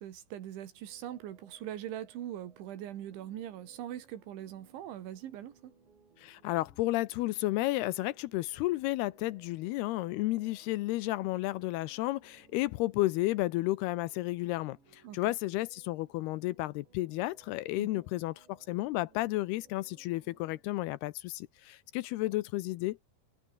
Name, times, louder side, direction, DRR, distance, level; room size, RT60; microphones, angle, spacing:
voice 1, 0.0-5.7 15.0-15.2 17.8-17.9, right 11 dB, 90° right, 4.5 m, -42 dB
sound 1, 0.7-20.6, right 5 dB, 70° right, 9.3 m, -65 dB
voice 2, 6.2-23.0, left 18 dB, 85° left, 2.4 m, -32 dB
omnidirectional pair, 5.3 m